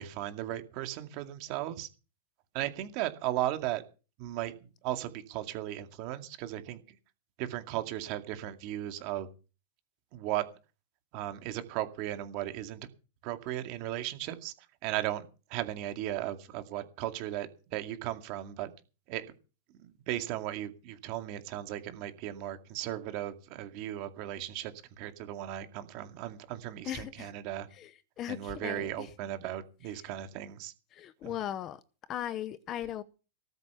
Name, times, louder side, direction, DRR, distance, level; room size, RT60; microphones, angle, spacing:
voice 1, 0.0-1.9 2.5-3.8 4.2-6.8 7.4-9.3 10.1-10.4 11.1-12.9 13.2-14.5 14.8-18.7 19.1-19.2 19.8-24.7 25.0-27.7 28.3-30.7 31.2-31.4, right 13 dB, 35° right, 2.2 m, -36 dB
voice 2, 26.8-27.3 27.8-27.9 28.2-29.1 30.9-31.8 32.1-33.0, left 11 dB, 25° left, 0.7 m, -37 dB
19.0 x 8.0 x 7.0 m
supercardioid pair, 170°, 0 cm